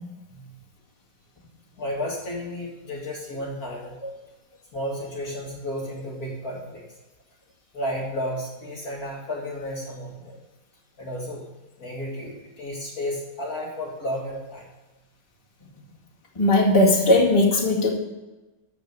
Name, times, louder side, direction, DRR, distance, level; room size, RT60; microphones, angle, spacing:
voice 1, 0.3-0.6 1.8-3.9 4.7-6.8 7.7-10.3 11.0-11.4 11.8-14.7, left 1 dB, 50° left, -2 dB, 2.2 m, -32 dB
voice 2, 16.4-17.9, left 2 dB, 15° left, -4 dB, 2.1 m, -18 dB
13.5 x 5.0 x 6.6 m, 1.1 s
omnidirectional pair, 2.2 m